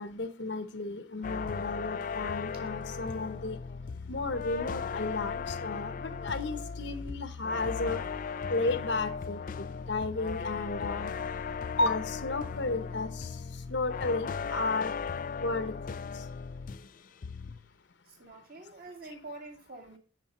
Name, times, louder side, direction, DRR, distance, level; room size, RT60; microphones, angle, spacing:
voice 1, 0.0-3.6 4.1-8.0 8.5-11.1 11.8-13.3 13.7-14.9 15.4-15.7, left 3 dB, 60° left, 11 dB, 0.9 m, -33 dB
sound 1, 1.2-16.9 17.2-17.7, left 5 dB, 40° left, 0.4 m, -37 dB
voice 2, 18.1-20.0, right 2 dB, 45° right, 2 dB, 2.1 m, -46 dB
9.1 x 5.7 x 4.2 m, 0.36 s
head